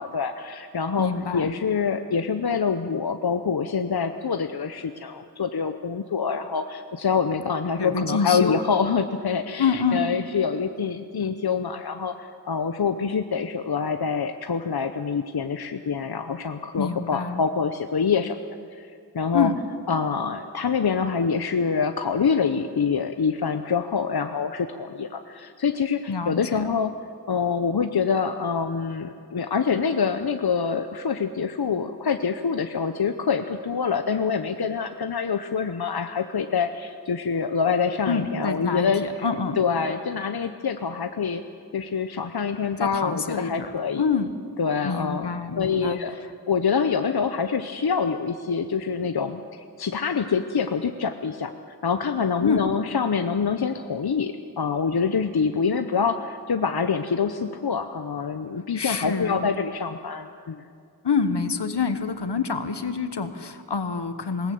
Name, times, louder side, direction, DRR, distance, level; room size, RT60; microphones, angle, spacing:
voice 1, 0.0-18.4 18.7-18.9 19.1-19.5 19.9-26.9 27.3-39.1 39.6-41.4 41.7-44.0 44.6-46.2 46.5-51.5 51.8-60.6, left 6 dB, 65° left, 8 dB, 0.8 m, -26 dB
voice 2, 1.0-1.5 7.8-8.6 9.6-10.1 16.7-17.4 19.3-19.6 26.1-26.7 38.0-39.6 42.8-43.7 44.0-44.3 44.8-46.0 52.4-52.7 58.7-59.5 61.0-64.5, left 5 dB, 80° left, 10 dB, 1.3 m, -26 dB
20.5 x 18.5 x 7.8 m, 2.4 s
wide cardioid pair, 55°, 40 cm